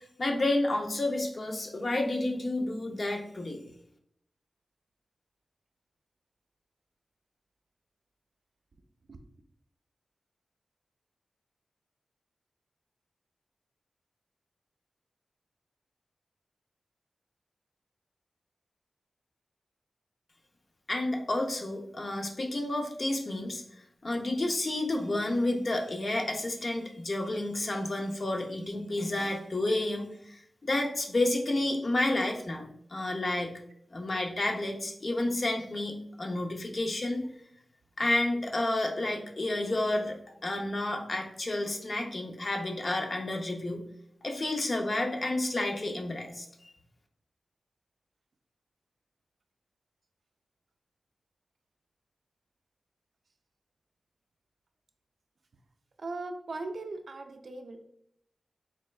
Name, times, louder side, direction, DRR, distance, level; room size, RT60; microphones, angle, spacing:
voice 1, 0.0-3.6 20.9-23.6 24.0-33.6 33.9-37.2 38.0-43.8 44.2-46.5, left 2 dB, 45° left, 2 dB, 0.5 m, -30 dB
voice 2, 56.0-57.8, right 3 dB, 60° right, 7 dB, 0.4 m, -38 dB
4.2 x 3.1 x 2.3 m, 0.70 s
wide cardioid pair, 115°, 0 cm